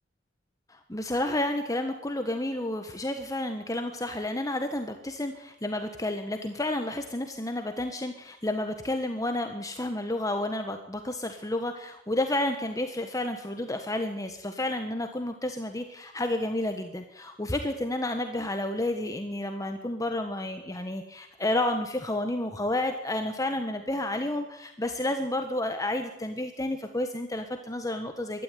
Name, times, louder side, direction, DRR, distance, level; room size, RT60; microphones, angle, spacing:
voice 1, 0.7-28.4, left 1 dB, 20° left, 6 dB, 1.4 m, -31 dB
23.0 x 13.0 x 9.3 m, 0.85 s
head